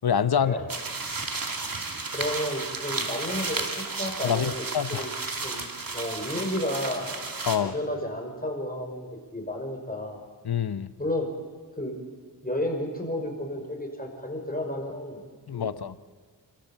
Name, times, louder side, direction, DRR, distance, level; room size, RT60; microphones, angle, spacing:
voice 1, 0.0-0.6 4.2-5.1 7.5-7.7 10.4-10.9 15.5-15.9, left 8 dB, 60° left, 14 dB, 1.0 m, -26 dB
sound 1, 0.7-7.6, right 3 dB, 50° right, 2.6 m, -33 dB
voice 2, 2.1-4.5 4.9-5.1 5.4-5.7 5.9-7.2 7.5-10.2 11.0-11.3 11.8-12.0 12.4-15.2 15.5-15.8, left 1 dB, 20° left, 2 dB, 5.7 m, -32 dB
28.5 x 14.5 x 7.5 m, 1.5 s
cardioid pair, 50°, 43 cm